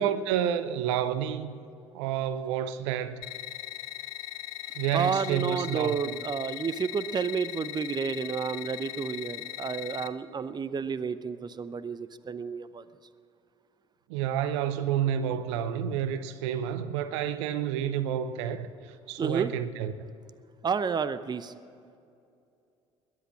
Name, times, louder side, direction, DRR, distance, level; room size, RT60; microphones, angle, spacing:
voice 1, 0.0-1.5 1.9-3.2 4.8-6.2 14.1-18.7 19.1-19.9, right 9 dB, 70° right, 13 dB, 0.7 m, -29 dB
sound 1, 3.2-10.1, left 16 dB, 65° left, 0.8 m, -39 dB
voice 2, 4.9-12.8 19.2-19.5 20.6-21.5, right 6 dB, 30° right, 14 dB, 0.8 m, -31 dB
21.0 x 10.5 x 6.2 m, 2.5 s
figure-of-eight pair, 55°, 15 cm